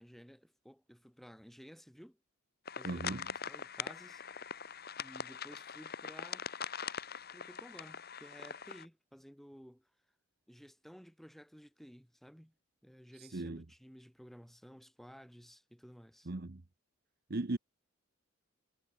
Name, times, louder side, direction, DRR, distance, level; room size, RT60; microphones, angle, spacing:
voice 1, 0.0-2.2 2.8-3.2 3.4-4.2 5.0-6.5 7.3-9.9 10.5-12.5 12.8-16.3, equal, ahead, 7.4 m, -55 dB
sound 1, 2.7-8.9, left 6 dB, 45° left, 2.8 m, -42 dB
voice 2, 2.8-3.3 13.2-13.6 16.3-16.6 17.3-17.6, right 2 dB, 50° right, 0.9 m, -38 dB
head